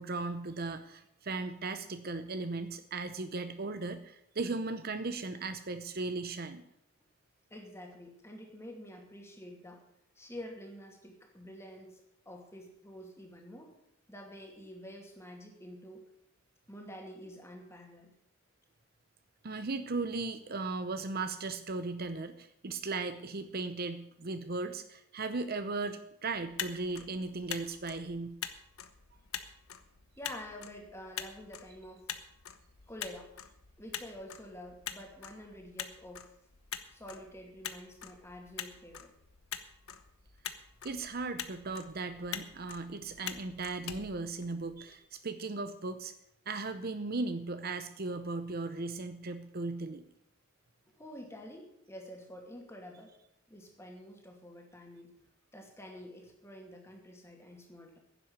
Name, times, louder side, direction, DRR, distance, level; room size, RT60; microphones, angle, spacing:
voice 1, 0.0-6.6 19.4-28.4 40.8-46.1 46.5-50.0, right 3 dB, 45° right, 9 dB, 0.7 m, -37 dB
voice 2, 7.5-9.8 10.2-13.7 14.1-16.0 16.7-18.1 30.2-32.1 32.9-33.3 33.8-36.3 36.9-39.1 50.9-53.1 53.5-55.1 55.5-58.0, equal, 10° left, 2 dB, 2.4 m, -48 dB
Motor vehicle (road), 26.4-44.9, left 9 dB, 80° left, 1.1 m, -45 dB
11.0 x 7.7 x 9.5 m, 0.76 s
head